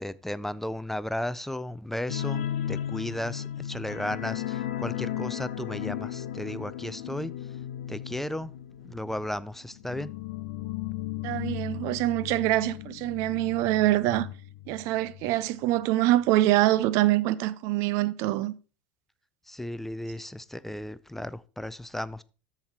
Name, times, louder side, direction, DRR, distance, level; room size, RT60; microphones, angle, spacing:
voice 1, 0.0-7.3 7.9-8.5 8.8-10.1 19.5-22.2, left 1 dB, 5° left, 0.4 m, -34 dB
sound 1, 2.1-15.3 15.6-15.8 16.2-16.3, left 12 dB, 70° left, 0.8 m, -36 dB
voice 2, 11.2-14.3 14.7-18.5, right 16 dB, 55° right, 0.5 m, -25 dB
13.5 x 4.8 x 2.9 m
hypercardioid pair, 75°, 6 cm